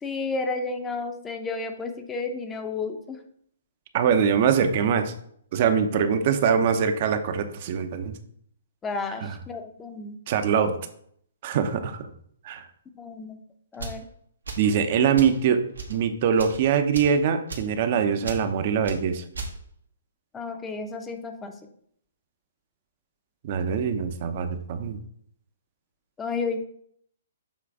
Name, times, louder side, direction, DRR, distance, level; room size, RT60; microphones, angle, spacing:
voice 1, 0.0-3.2 8.8-10.2 12.9-13.4 13.7-14.0 20.3-21.6 26.2-26.6, left 4 dB, 15° left, 6 dB, 0.8 m, -32 dB
voice 2, 3.9-5.1 5.5-8.2 9.2-9.3 10.3-10.7 11.4-12.0 12.4-12.6 14.6-15.6 15.9-19.2 23.4-25.0, right 7 dB, 45° right, 8 dB, 0.8 m, -23 dB
sound 1, 13.7-14.0 14.4-14.7 15.1-15.4 15.7-16.0 16.3-16.6 16.9-17.2 17.5-17.7 18.2-18.4 18.8-19.0 19.3-19.5, right 3 dB, 85° right, 1.2 m, -36 dB
7.3 x 3.3 x 4.8 m, 0.66 s
hypercardioid pair, 130°, 0 cm